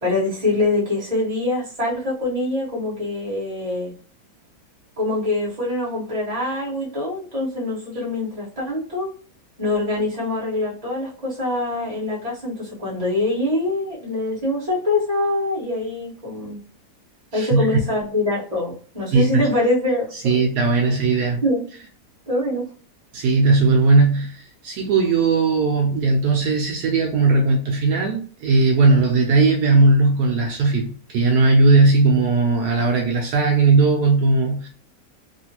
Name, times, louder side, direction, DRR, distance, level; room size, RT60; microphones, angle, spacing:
voice 1, 0.0-3.9 5.0-9.1 9.6-16.6 17.3-20.4 21.4-21.6 22.3-22.7, left 2 dB, 25° right, 1.4 m, -24 dB
voice 2, 17.3-17.8 19.1-19.5 20.2-21.4 23.1-34.7, right 3 dB, 75° right, 1.1 m, -18 dB
3.0 x 2.4 x 2.9 m
omnidirectional pair, 1.7 m